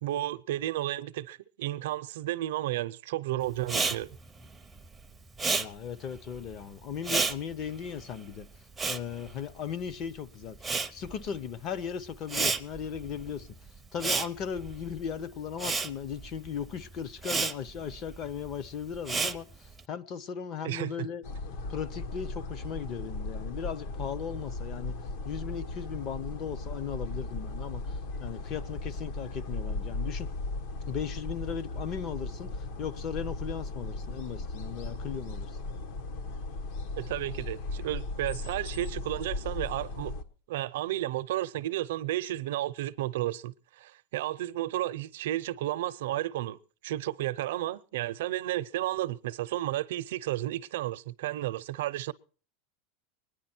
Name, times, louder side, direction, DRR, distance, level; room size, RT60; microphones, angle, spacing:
voice 1, 0.0-4.2 20.6-20.9 37.0-40.1 40.5-46.6 46.8-52.1, right 14 dB, 75° right, 0.6 m, -32 dB
Respiratory sounds, 3.6-10.1 10.3-19.8, right 4 dB, 5° right, 0.6 m, -33 dB
voice 2, 5.6-8.5 8.8-10.6 10.9-13.5 13.9-21.2 21.7-24.9 25.3-30.3 30.9-32.5 32.8-35.5, left 8 dB, 30° left, 0.7 m, -37 dB
sound 1, 21.2-40.2, left 2 dB, 60° left, 1.3 m, -37 dB
23.0 x 10.0 x 4.4 m
supercardioid pair, 170°, 0 cm